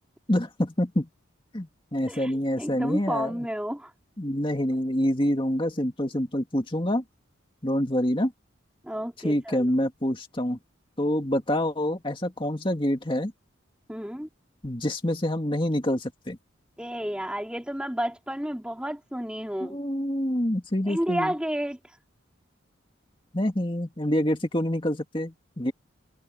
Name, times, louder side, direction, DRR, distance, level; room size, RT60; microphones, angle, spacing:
voice 1, 0.3-1.1 1.5-3.5 4.2-7.0 7.6-8.3 9.2-10.6 11.0-13.3 14.6-16.4 19.6-21.3 23.3-25.7, left 1 dB, 25° left, 2.2 m, -26 dB
voice 2, 2.1-3.9 8.8-9.7 13.9-14.3 16.8-19.8 20.9-22.0, equal, 5° right, 3.0 m, -31 dB
head